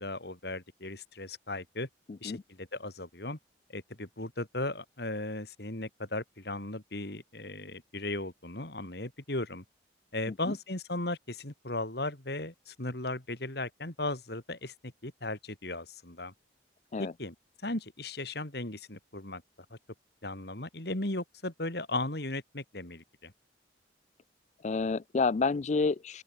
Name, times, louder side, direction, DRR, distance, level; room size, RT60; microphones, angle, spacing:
voice 1, 0.0-1.9 2.2-3.4 3.7-9.6 10.1-14.7 15.0-16.3 17.0-17.3 17.6-19.4 19.7-19.8 20.2-23.3, left 2 dB, 55° left, 3.0 m, -36 dB
voice 2, 2.1-2.4 10.3-10.6 16.9-17.1 24.6-26.2, left 4 dB, 40° left, 0.4 m, -29 dB
open air
head